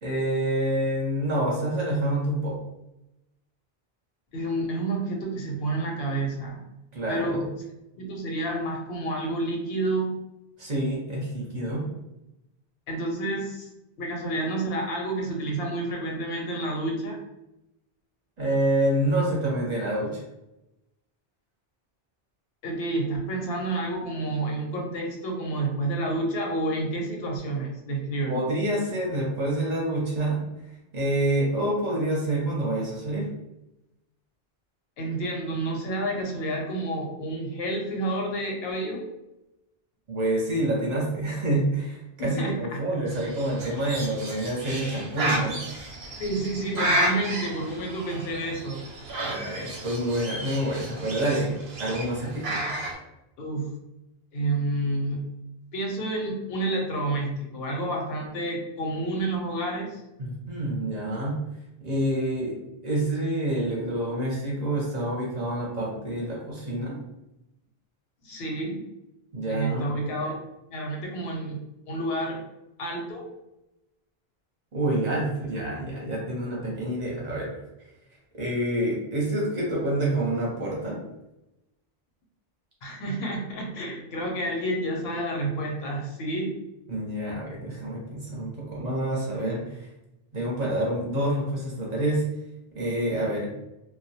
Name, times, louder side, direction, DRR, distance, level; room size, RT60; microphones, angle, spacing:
voice 1, 0.0-2.6 6.9-7.4 10.6-11.9 18.4-20.2 28.3-30.4 30.9-33.3 40.1-45.6 49.2-52.6 60.2-61.4 61.8-62.6 62.8-67.0 69.3-69.9 74.7-77.5 78.3-81.0 86.9-89.9 90.3-92.2 92.7-93.5, right 1 dB, 50° right, -4 dB, 0.7 m, -27 dB
voice 2, 4.3-6.6 7.1-7.4 8.0-10.1 12.9-13.7 14.0-17.2 22.6-28.4 35.0-39.0 42.2-43.1 46.2-48.8 53.4-53.8 54.3-55.3 55.7-60.0 68.2-68.8 69.5-70.4 70.7-71.6 71.9-72.4 72.8-73.3 82.8-86.5, right 2 dB, 80° left, 0 dB, 0.8 m, -29 dB
Bird, 43.1-53.0, right 1 dB, 90° right, 0.8 m, -32 dB
2.2 x 2.1 x 2.7 m, 0.91 s
omnidirectional pair, 1.0 m